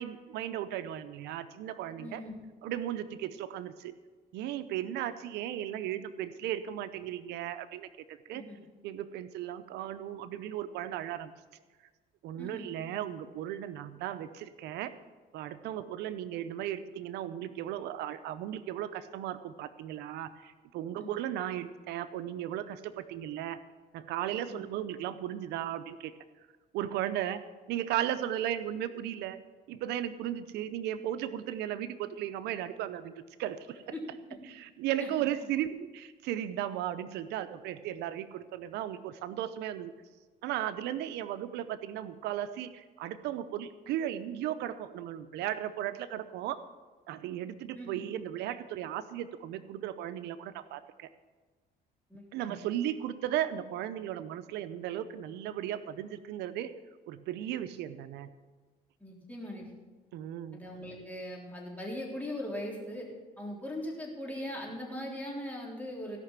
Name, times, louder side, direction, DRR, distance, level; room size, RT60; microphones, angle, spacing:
voice 1, 0.0-2.2 2.6-3.9 4.3-8.4 8.8-11.3 12.2-14.9 15.3-23.6 23.9-26.1 26.7-27.4 27.7-29.4 29.7-33.8 34.5-39.9 40.4-46.6 47.1-51.1 52.3-56.7 57.1-58.3 60.1-60.6, right 11 dB, 85° right, 11 dB, 0.6 m, -36 dB
voice 2, 2.0-2.4 8.3-8.6 12.4-12.7 21.0-21.2 24.5-24.7 33.9-34.0 35.0-35.1 47.7-48.0 52.1-52.6 59.0-59.6 60.5-63.1 63.4-66.2, left 1 dB, 10° left, -2 dB, 3.5 m, -40 dB
17.0 x 5.9 x 7.3 m, 1.3 s
cardioid pair, 110°, 17 cm